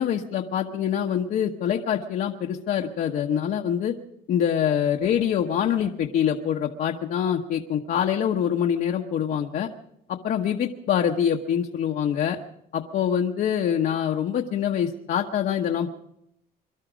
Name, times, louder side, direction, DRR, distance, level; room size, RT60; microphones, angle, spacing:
voice 1, 0.0-3.9 4.3-9.7 10.1-12.4 12.7-15.9, left 9 dB, 60° left, 1 dB, 1.0 m, -25 dB
23.0 x 12.0 x 5.1 m, 0.79 s
cardioid pair, 110°, 17 cm